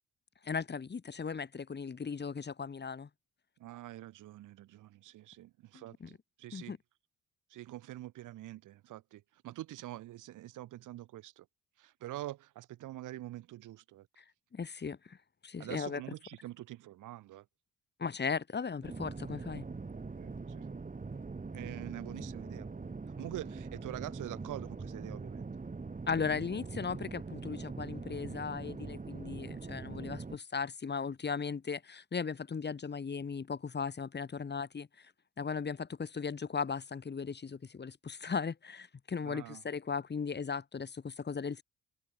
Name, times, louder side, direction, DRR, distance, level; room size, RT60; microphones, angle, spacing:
voice 1, 0.4-3.1 6.0-6.1 6.5-6.8 14.2-14.3 14.5-15.2 15.4-16.0 18.0-19.6 22.2-22.3 26.1-35.1 35.4-41.6, left 5 dB, 35° left, 2.6 m, -37 dB
voice 2, 3.6-6.7 7.5-11.5 11.8-14.1 15.6-17.4 20.1-20.7 21.5-25.5 39.2-39.6, right 15 dB, 85° right, 5.6 m, -45 dB
sound 1, 18.8-30.4, right 4 dB, 25° right, 4.4 m, -42 dB
cardioid pair, 90°, 30 cm